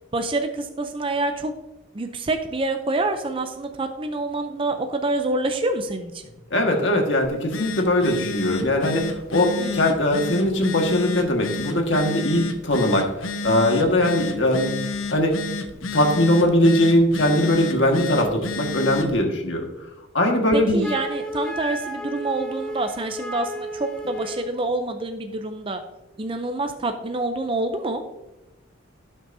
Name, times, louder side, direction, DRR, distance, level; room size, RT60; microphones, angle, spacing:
voice 1, 0.1-1.5 1.9-6.2 9.6-9.8 20.5-25.8 26.2-28.0, right 2 dB, 25° right, 6 dB, 0.5 m, -27 dB
voice 2, 6.5-14.7 15.1-15.4 15.9-19.6 20.1-20.8, left 1 dB, 65° left, 2 dB, 1.7 m, -20 dB
Telephone, 7.2-19.2, left 3 dB, 85° left, 0.8 m, -31 dB
Wind instrument woodwind instrument, 20.8-24.5, right 1 dB, 5° left, 0.7 m, -33 dB
16.5 x 6.2 x 2.7 m, 1.0 s
head